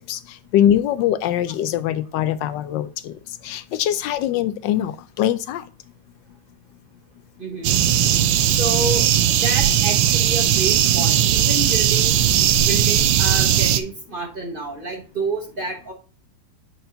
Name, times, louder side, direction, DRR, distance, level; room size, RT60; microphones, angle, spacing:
voice 1, 0.5-3.1 3.4-5.6, left 11 dB, 80° left, 14 dB, 1.2 m, -22 dB
voice 2, 7.4-7.8 8.5-12.2 12.6-15.9, right 2 dB, 35° right, 2 dB, 1.0 m, -29 dB
sound 1, 7.6-13.8, right 11 dB, 85° right, 1.4 m, -18 dB
8.0 x 4.3 x 3.8 m, 0.36 s
omnidirectional pair, 2.0 m